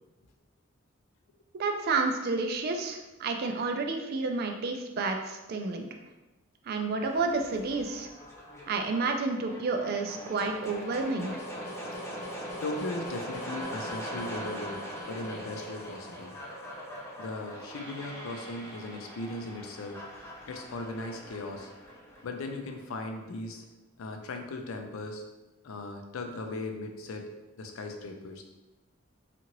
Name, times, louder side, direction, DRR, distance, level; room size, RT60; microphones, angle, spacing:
voice 1, 1.6-5.9 6.7-8.1 8.7-11.4, right 3 dB, 50° right, 4 dB, 0.3 m, -30 dB
sound 1, 7.0-23.0, equal, 15° left, 0.4 m, -41 dB
voice 2, 12.6-14.8 15.1-16.3 17.2-20.0 20.5-21.7 22.2-23.6 24.0-25.2 25.6-27.3 27.6-28.4, left 2 dB, 80° left, 4 dB, 0.4 m, -38 dB
2.8 x 2.5 x 2.9 m, 1.0 s
head